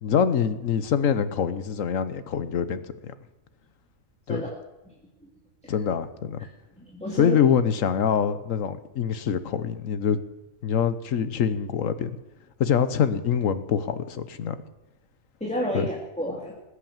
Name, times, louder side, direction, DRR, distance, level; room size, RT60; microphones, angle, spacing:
voice 1, 0.0-3.1 4.3-4.4 5.7-6.5 7.1-10.2 10.6-12.2 12.6-14.6 15.7-15.9, left 7 dB, 70° left, 13 dB, 1.3 m, -25 dB
voice 2, 6.8-7.4 15.4-16.5, equal, 5° left, -2 dB, 2.4 m, -30 dB
20.0 x 8.3 x 7.4 m, 0.99 s
omnidirectional pair, 1.4 m